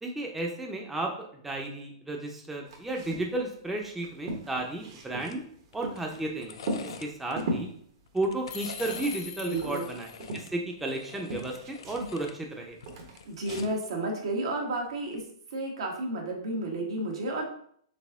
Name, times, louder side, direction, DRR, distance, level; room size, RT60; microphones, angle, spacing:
voice 1, 0.0-5.4 5.7-6.6 7.0-7.7 8.1-12.8, right 2 dB, 5° right, 0 dB, 0.6 m, -33 dB
sound 1, 2.7-3.3 3.6-3.7 4.0-6.2 6.6-7.8 8.3-9.3 9.6-11.0 11.3-12.5 12.9-13.7, right 1 dB, 55° right, 1.1 m, -37 dB
sound 2, 5.2-5.4 5.7-7.4 8.1-9.2 9.6-12.4 12.7-13.8 15.0-15.2, left 7 dB, 75° left, 0.5 m, -47 dB
sound 3, 8.5-10.2, left 7 dB, 35° left, 0.7 m, -41 dB
voice 2, 9.4-9.9 13.3-15.2 15.5-17.4, right 2 dB, 75° right, 1 dB, 1.3 m, -32 dB
4.1 x 3.5 x 3.6 m, 0.64 s
hypercardioid pair, 140°, 3 cm